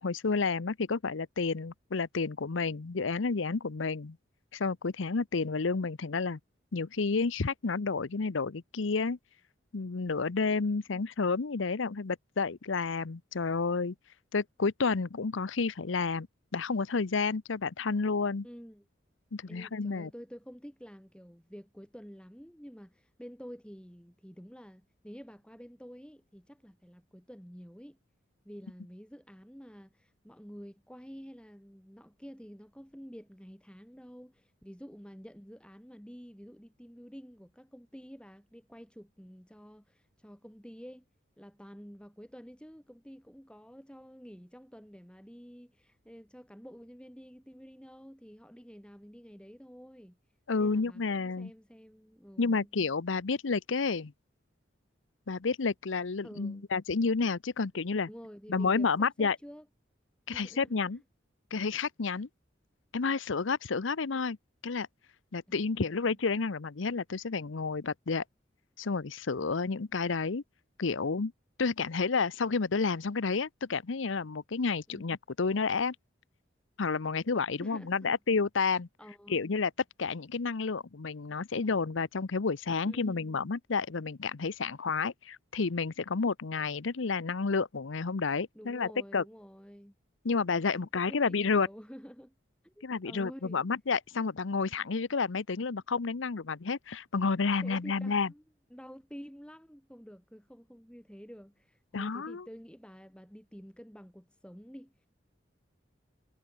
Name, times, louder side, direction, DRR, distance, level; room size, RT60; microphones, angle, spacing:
voice 1, 0.0-4.2 4.5-6.4 6.7-9.2 9.7-13.9 14.3-16.3 16.5-18.4 19.3-20.1 50.5-51.5 52.4-54.1 55.3-58.1 58.5-59.4 60.3-61.0 61.5-62.3 62.9-64.4 64.6-64.9 65.3-68.2 68.8-70.4 70.8-71.3 71.6-76.0 76.8-78.9 79.3-79.7 80.0-89.2 90.2-91.7 92.8-98.3 101.9-102.5, left 4 dB, 80° left, 0.7 m, -30 dB
voice 2, 18.4-18.9 19.5-28.0 28.4-41.0 41.4-50.2 50.6-52.7 56.2-56.7 58.1-59.7 60.3-60.8 65.5-66.2 74.9-75.1 77.6-78.2 79.0-79.5 82.8-83.3 88.5-89.9 90.7-92.3 92.6-93.6 97.6-98.4 98.7-105.1, equal, 5° left, 5.7 m, -49 dB
head